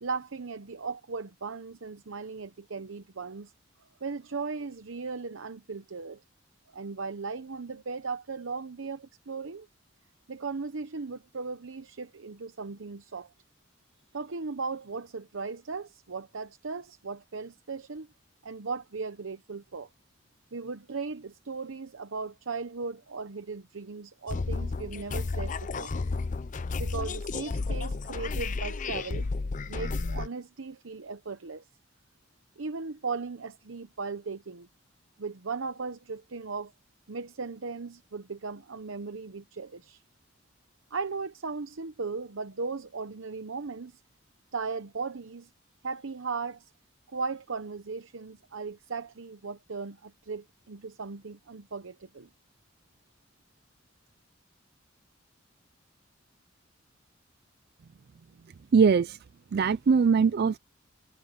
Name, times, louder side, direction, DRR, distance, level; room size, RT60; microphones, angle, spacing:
voice 1, 0.0-3.5 4.0-6.2 6.7-9.7 10.3-13.3 14.1-18.1 18.4-19.9 20.5-25.9 26.8-29.3 29.7-31.7 32.6-34.7 35.2-36.7 37.1-40.0 40.9-44.0 44.5-45.5 45.8-46.7 47.1-52.3, right 4 dB, 85° right, 0.8 m, -37 dB
sound 1, 24.3-30.3, left 3 dB, 40° left, 0.5 m, -32 dB
voice 2, 58.7-59.2 59.5-60.6, right 5 dB, 55° right, 0.4 m, -21 dB
head